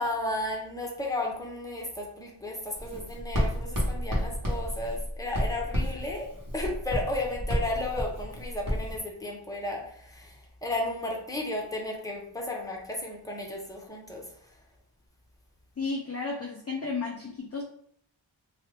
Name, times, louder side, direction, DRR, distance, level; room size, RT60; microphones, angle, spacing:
voice 1, 0.0-6.3 6.5-10.4 10.6-14.2, left 1 dB, 5° left, -1 dB, 0.7 m, -33 dB
Writing, 2.7-9.0, equal, 45° right, 1.1 m, -31 dB
voice 2, 15.8-17.6, left 4 dB, 35° left, -1 dB, 0.4 m, -33 dB
2.8 x 2.3 x 3.2 m, 0.66 s
wide cardioid pair, 50°, 48 cm